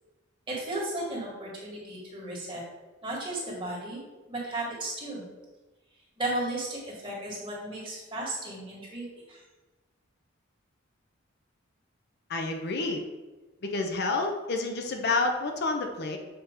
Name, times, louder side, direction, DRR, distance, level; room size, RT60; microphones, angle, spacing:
voice 1, 0.5-2.6 3.0-4.0 4.3-5.2 6.2-9.4, right 1 dB, 25° right, -5 dB, 1.9 m, -34 dB
voice 2, 12.3-13.0 13.6-16.2, left 3 dB, 55° left, 3 dB, 0.6 m, -29 dB
6.8 x 2.9 x 5.1 m, 1.2 s
head